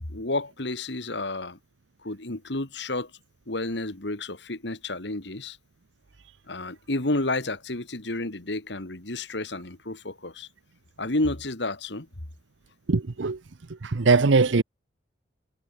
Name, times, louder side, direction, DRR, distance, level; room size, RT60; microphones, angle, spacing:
voice 1, 0.1-1.6 2.0-3.1 3.5-5.6 6.5-10.5 11.0-12.1, left 2 dB, 70° left, 2.3 m, -31 dB
voice 2, 12.9-13.4 13.8-14.6, right 4 dB, 85° right, 0.8 m, -21 dB
head